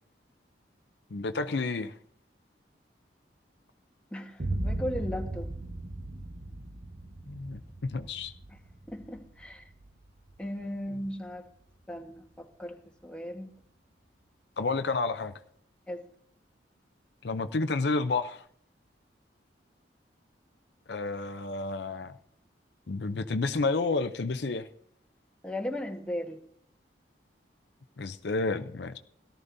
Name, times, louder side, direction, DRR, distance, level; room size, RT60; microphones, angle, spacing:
voice 1, 1.1-1.9 7.3-8.3 14.6-15.3 17.2-18.4 20.9-22.1 22.9-24.7 28.0-29.0, left 3 dB, 65° left, 9 dB, 0.6 m, -30 dB
voice 2, 4.1-5.5 8.5-8.6 8.9-9.7 10.4-11.5 11.9-13.5 15.9-16.0 25.4-26.4, left 1 dB, 5° left, 1 dB, 1.3 m, -37 dB
Boom, 4.4-12.2, right 1 dB, 45° right, 1.1 m, -38 dB
17.5 x 12.5 x 2.7 m, 0.64 s
head